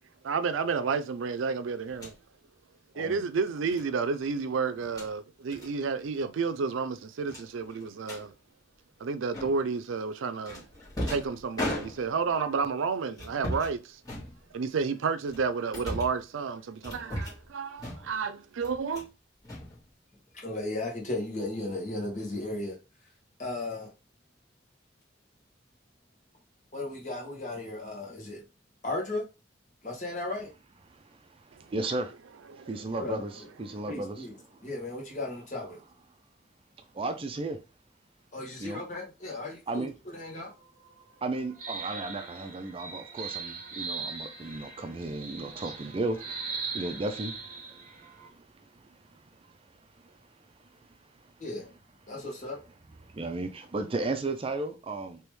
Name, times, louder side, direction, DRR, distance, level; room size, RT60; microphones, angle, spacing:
voice 1, 0.2-2.1 3.0-8.3 9.0-10.7 11.1-14.0 14.5-19.1 32.5-32.7, right 5 dB, 90° right, 0.4 m, -31 dB
sound 1, 1.9-2.2 3.7-3.9 4.7-5.1 5.5-5.7 6.0-6.2 6.5-6.6 7.3-8.2 9.3-9.8 10.4-12.3 13.1-13.7 14.0-14.8 15.3-16.2 16.8-17.5 17.8-18.3 18.6-19.1 19.4-20.3, left 1 dB, 20° left, 1.5 m, -37 dB
voice 2, 20.4-22.8 23.4-23.9 26.7-28.4 28.8-29.2 29.8-30.5 33.0-33.5 33.9-34.4 34.6-35.8 38.3-40.5 51.4-51.7 52.1-52.6, left 2 dB, 40° left, 1.3 m, -35 dB
voice 3, 30.9-32.1 32.5-34.3 36.9-37.6 38.6-38.8 39.7-39.9 41.2-51.3 53.0-55.2, right 2 dB, 30° right, 0.4 m, -35 dB
sound 2, 40.4-48.3, right 5 dB, 45° right, 1.0 m, -40 dB
3.4 x 2.9 x 3.1 m
head